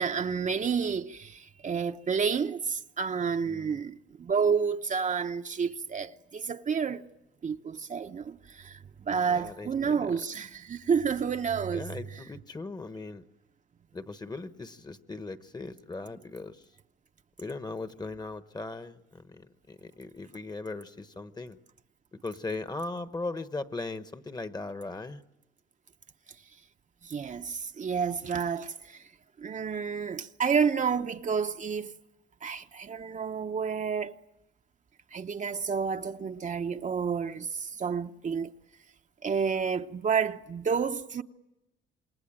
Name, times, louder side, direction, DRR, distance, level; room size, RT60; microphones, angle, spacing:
voice 1, 0.0-7.1 7.4-12.2 27.0-29.0 29.4-31.9 32.4-34.2 35.1-38.5 39.2-41.2, right 6 dB, 40° right, 0.8 m, -30 dB
voice 2, 3.5-3.8 9.2-10.2 11.7-13.2 13.9-16.6 17.4-21.6 22.2-25.2, left 3 dB, 20° left, 1.2 m, -39 dB
27.5 x 21.0 x 8.9 m
cardioid pair, 90°, 20 cm